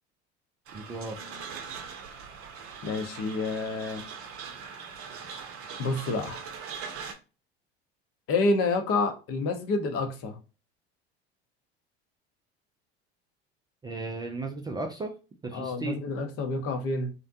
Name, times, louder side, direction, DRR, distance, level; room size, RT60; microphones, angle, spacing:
voice 1, 0.7-1.2 13.8-15.1 15.4-16.0, right 3 dB, 15° right, 0.3 m, -35 dB
sound 1, 0.7-7.1, right 6 dB, 45° right, 0.7 m, -41 dB
voice 2, 2.8-4.0 5.8-6.5 8.3-10.4 15.5-17.1, left 3 dB, 45° left, 0.7 m, -28 dB
2.5 x 2.1 x 2.6 m
hypercardioid pair, 75°, 33 cm